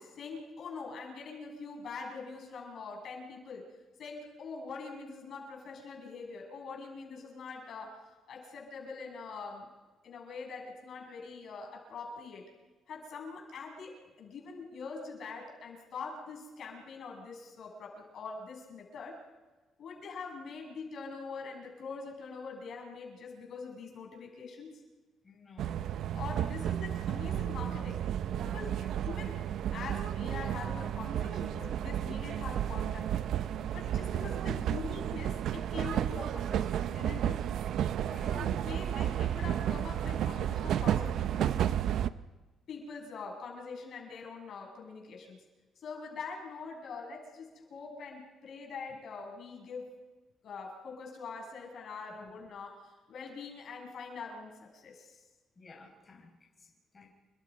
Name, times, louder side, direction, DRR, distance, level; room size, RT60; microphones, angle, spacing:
voice 1, 0.0-9.7 10.0-12.5 12.9-19.2 19.8-24.8 26.1-28.0 28.4-28.8 29.0-29.4 29.7-33.3 33.7-37.4 38.3-41.6 42.7-45.4 45.8-50.1 50.4-55.3, left 4 dB, 65° left, 1 dB, 7.5 m, -44 dB
voice 2, 25.2-25.8 28.7-28.9 38.0-38.6 52.2-52.3 55.6-57.1, left 4 dB, 30° left, 0 dB, 6.0 m, -54 dB
sound 1, 25.6-42.1, right 10 dB, 75° right, 0.8 m, -32 dB
29.5 x 23.0 x 5.3 m, 1.2 s
cardioid pair, 90°, 0 cm